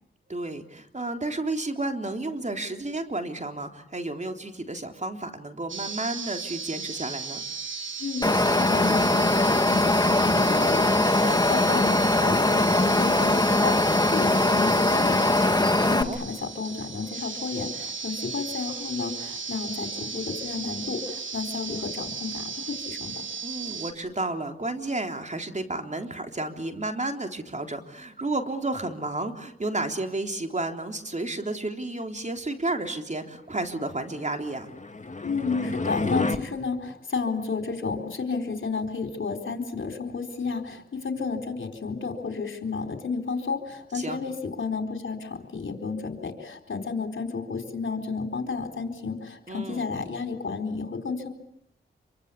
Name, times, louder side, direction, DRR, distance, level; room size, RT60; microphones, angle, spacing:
voice 1, 0.3-7.4 15.7-16.2 23.4-34.7 43.9-44.2 49.5-49.9, right 2 dB, 35° right, 5 dB, 3.7 m, -32 dB
sound 1, 5.7-23.9, right 5 dB, 70° right, 3.4 m, -35 dB
voice 2, 8.0-23.1 35.2-51.3, left 4 dB, 70° left, 5 dB, 4.2 m, -32 dB
Wind, 8.2-16.0, left 2 dB, 20° left, 1.8 m, -21 dB
sound 2, 34.4-36.4, left 3 dB, 35° left, 2.4 m, -30 dB
26.5 x 24.5 x 8.5 m, 0.73 s
cardioid pair, 55°, 21 cm